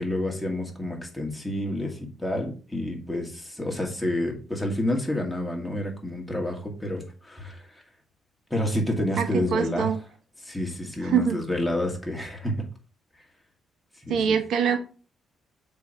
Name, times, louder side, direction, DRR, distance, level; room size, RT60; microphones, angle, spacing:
voice 1, 0.0-7.8 8.5-10.0 10.4-12.7 14.0-14.4, left 1 dB, 5° left, 0 dB, 2.1 m, -29 dB
voice 2, 9.2-10.0 11.0-11.4 14.1-14.8, right 7 dB, 75° right, 7 dB, 0.9 m, -24 dB
6.6 x 5.2 x 3.0 m, 0.36 s
cardioid pair, 90°, 0 cm